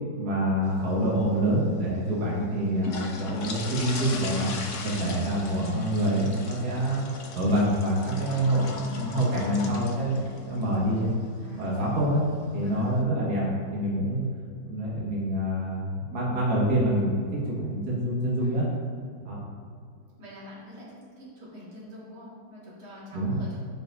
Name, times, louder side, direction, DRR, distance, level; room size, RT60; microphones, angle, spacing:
voice 1, 0.2-4.5 4.8-7.1 7.3-11.1 11.6-12.2 12.5-13.4 13.7-14.3 14.6-17.2 17.5-18.6 19.2-19.4 23.1-23.6, right 1 dB, 50° right, -6 dB, 2.1 m, -26 dB
sound 1, 0.6-13.0, left 3 dB, 60° left, 0.8 m, -40 dB
voice 2, 8.2-8.6 11.4-11.7 12.6-12.8 18.3-18.5 20.2-23.6, equal, 80° right, -7 dB, 2.9 m, -46 dB
12.5 x 5.1 x 2.6 m, 2.3 s
omnidirectional pair, 2.3 m